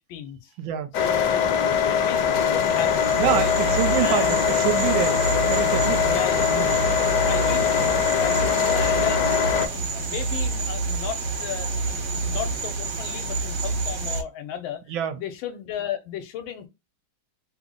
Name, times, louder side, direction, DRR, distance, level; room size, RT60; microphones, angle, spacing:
voice 1, 0.0-0.4 1.0-1.5 1.9-3.6 4.0-4.4 6.0-6.6 7.3-7.9 8.2-14.8 15.2-16.7, left 9 dB, 85° left, 1.4 m, -34 dB
voice 2, 0.6-0.9 3.2-5.2 5.5-6.2 6.5-6.8 14.9-15.2, right 11 dB, 80° right, 1.3 m, -26 dB
sound 1, 0.9-9.7, left 7 dB, 70° left, 1.1 m, -22 dB
sound 2, 2.1-14.2, right 3 dB, 55° right, 1.3 m, -29 dB
3.3 x 2.0 x 3.6 m
omnidirectional pair, 2.2 m